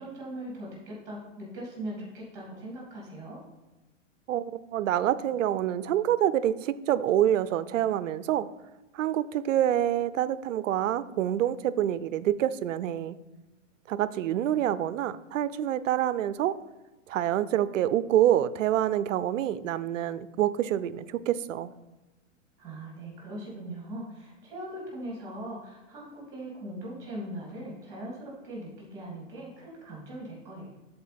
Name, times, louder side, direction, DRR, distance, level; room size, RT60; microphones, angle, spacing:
voice 1, 0.0-3.4 22.6-30.7, right 1 dB, 10° right, -4 dB, 2.7 m, -40 dB
voice 2, 4.3-8.5 8.9-13.2 13.9-16.6 17.1-21.7, right 11 dB, 75° right, 16 dB, 0.5 m, -27 dB
13.0 x 4.4 x 3.4 m, 1.1 s
hypercardioid pair, 170°, 38 cm